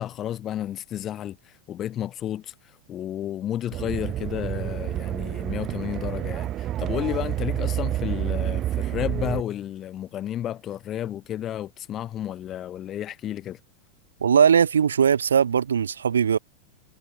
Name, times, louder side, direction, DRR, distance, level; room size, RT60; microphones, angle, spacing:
voice 1, 0.0-1.4 1.7-2.5 2.9-13.6, left 11 dB, 30° left, 2.3 m, -32 dB
sound 1, 3.7-9.4, right 12 dB, 30° right, 0.3 m, -29 dB
voice 2, 14.2-16.4, right 7 dB, 70° right, 0.7 m, -19 dB
figure-of-eight pair, 90°, 0 cm